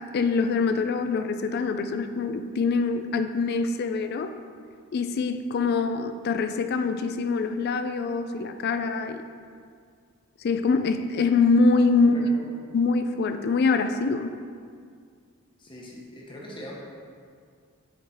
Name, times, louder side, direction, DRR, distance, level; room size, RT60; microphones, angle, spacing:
voice 1, 0.0-4.3 4.9-9.2 10.4-12.1 12.7-14.3, left 4 dB, 50° left, 8 dB, 0.3 m, -24 dB
voice 2, 12.0-12.5 15.6-16.7, equal, 25° left, -3 dB, 1.0 m, -41 dB
7.2 x 3.8 x 4.3 m, 2.1 s
head